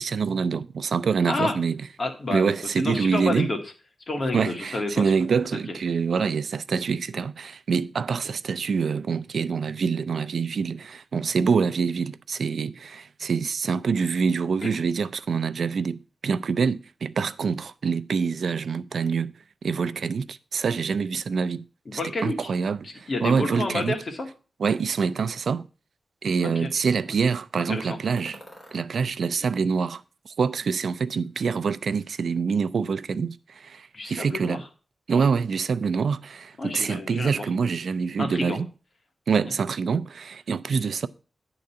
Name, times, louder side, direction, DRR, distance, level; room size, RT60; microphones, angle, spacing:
voice 1, 0.0-1.7 2.3-3.5 4.3-19.3 19.6-21.7 22.2-24.0 24.6-25.6 26.2-28.4 28.7-34.6 35.1-38.7 39.3-41.1, right 5 dB, 75° right, 0.4 m, -26 dB
voice 2, 2.0-3.6 4.1-5.1 5.5-5.6 21.9-22.5 22.8-24.3 26.4-26.7 27.7-28.0 29.4-29.5 33.9-34.7 36.6-37.5 38.2-38.6 39.4-39.5 40.7-40.8, left 2 dB, 50° left, 1.9 m, -30 dB
sound 1, 28.2-28.8 29.4-30.4 30.6-31.5, equal, 15° left, 4.2 m, -50 dB
9.5 x 3.9 x 7.1 m
wide cardioid pair, 100°, 0 cm